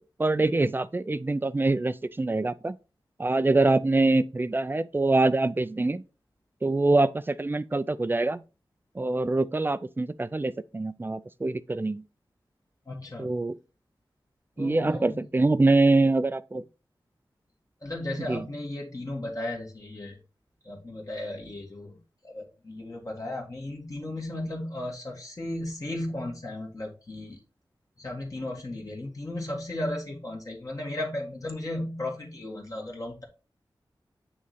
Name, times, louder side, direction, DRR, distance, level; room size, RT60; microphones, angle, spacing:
voice 1, 0.2-2.8 3.2-6.0 6.6-8.4 9.0-12.0 13.2-13.6 14.6-16.6 18.3-18.4, right 2 dB, 25° right, 0.4 m, -24 dB
voice 2, 12.9-13.3 14.6-15.3 17.8-20.2 20.6-21.9 22.2-27.4 28.0-33.2, left 1 dB, 40° left, 1.5 m, -35 dB
8.4 x 3.1 x 4.0 m
wide cardioid pair, 95°, 9 cm